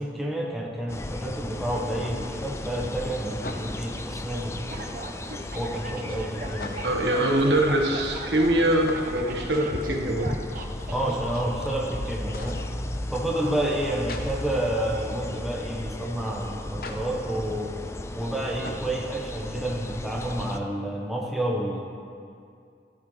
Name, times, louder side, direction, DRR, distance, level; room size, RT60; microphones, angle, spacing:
voice 1, 0.0-4.9 5.5-6.8 10.9-12.6 13.1-17.7 18.1-21.8, right 1 dB, ahead, -3 dB, 1.2 m, -29 dB
sound 1, 0.8-0.9 3.4-4.0 6.5-7.1 8.8-9.4 12.3-12.7 14.1-14.2 16.8-17.0 18.6-18.9, left 2 dB, 55° left, 0.8 m, -39 dB
sound 2, 0.9-20.6, left 1 dB, 15° left, 0.4 m, -35 dB
sound 3, 4.7-11.4, right 2 dB, 50° right, 0.8 m, -40 dB
voice 2, 6.8-10.4, right 1 dB, 80° right, 0 dB, 1.4 m, -23 dB
13.0 x 13.0 x 3.4 m, 2.4 s
head